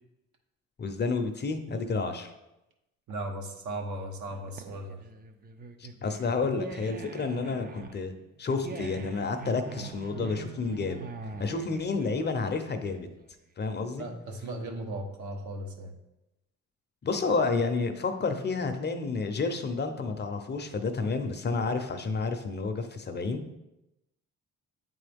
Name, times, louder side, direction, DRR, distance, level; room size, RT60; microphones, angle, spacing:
voice 1, 0.8-2.3 5.8-8.1 8.4-11.0 11.4-13.1 13.6-14.1 17.0-23.4, left 4 dB, 35° left, 7 dB, 0.7 m, -30 dB
voice 2, 3.1-5.0 14.0-15.9, right 1 dB, 70° right, 2 dB, 1.2 m, -37 dB
sound 1, 4.3-13.3, right 4 dB, 30° right, 0.6 m, -43 dB
8.6 x 3.8 x 3.5 m, 0.93 s
cardioid pair, 90°, 30 cm